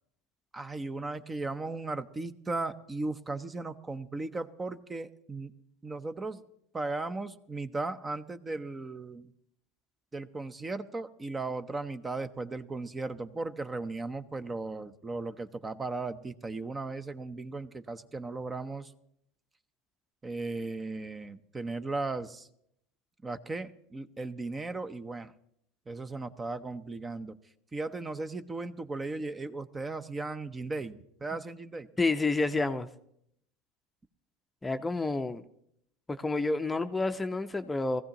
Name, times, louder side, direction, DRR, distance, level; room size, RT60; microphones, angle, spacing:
voice 1, 0.5-5.5 5.8-6.4 6.7-9.3 10.1-18.9 20.2-22.5 23.2-25.3 25.9-27.3 27.7-31.9, right 3 dB, 20° right, 11 dB, 0.7 m, -36 dB
voice 2, 32.0-32.9 34.6-35.4 36.1-38.0, left 3 dB, 15° left, 9 dB, 0.7 m, -29 dB
20.0 x 15.0 x 3.0 m, 0.73 s
hypercardioid pair, 85°, 0 cm